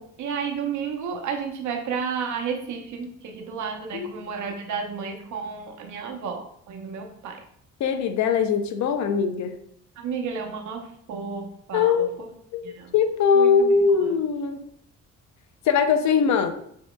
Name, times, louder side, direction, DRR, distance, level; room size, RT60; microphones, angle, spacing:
voice 1, 0.2-7.4 10.0-12.3 12.6-12.9 13.3-13.8, right 6 dB, 75° right, 3 dB, 0.9 m, -32 dB
voice 2, 7.8-9.5 11.7-12.2 12.5-14.6 15.6-16.5, left 6 dB, 70° left, 8 dB, 0.6 m, -21 dB
6.9 x 2.8 x 2.2 m, 0.69 s
cardioid pair, 90°, 30 cm